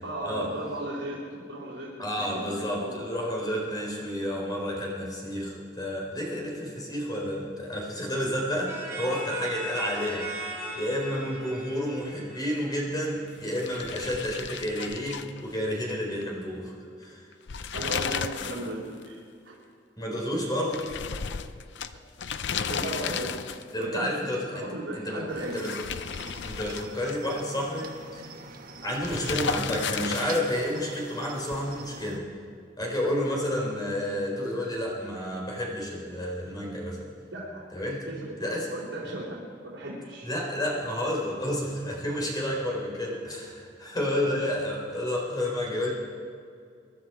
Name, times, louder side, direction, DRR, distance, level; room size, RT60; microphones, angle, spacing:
voice 1, 0.0-3.2 3.7-3.8 17.7-19.2 19.4-19.5 22.7-25.7 37.3-37.6 38.2-38.3 38.7-40.3 44.1-44.3, right 1 dB, 80° right, -6 dB, 3.7 m, -36 dB
voice 2, 2.0-10.3 10.7-16.7 17.0-17.2 20.0-20.9 23.7-25.8 26.4-28.3 28.8-32.3 32.8-37.1 37.7-38.1 38.4-38.7 40.2-45.9, equal, 20° left, -2 dB, 4.0 m, -30 dB
sound 1, 8.6-13.2, right 2 dB, 15° right, 3.9 m, -38 dB
sound 2, 13.4-15.9 16.2-16.3 17.3-18.7 19.0-19.1 20.7-23.8 25.4-27.4 29.0-30.7, left 6 dB, 65° left, 0.6 m, -34 dB
Cricket, 25.3-32.2, right 4 dB, 50° right, 1.3 m, -45 dB
24.0 x 11.5 x 4.7 m, 2.3 s
head